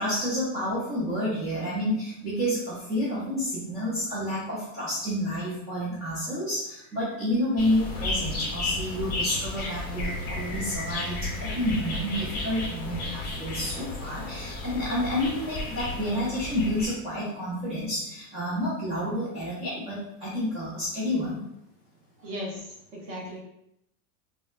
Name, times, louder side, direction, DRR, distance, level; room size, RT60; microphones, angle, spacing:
voice 1, 0.0-21.4, equal, 15° right, -8 dB, 0.5 m, -29 dB
sound 1, 7.6-16.9, left 2 dB, 25° left, 0.7 m, -33 dB
voice 2, 22.2-23.4, equal, 40° right, -2 dB, 1.0 m, -37 dB
4.0 x 2.2 x 2.3 m, 0.80 s
supercardioid pair, 165°, 41 cm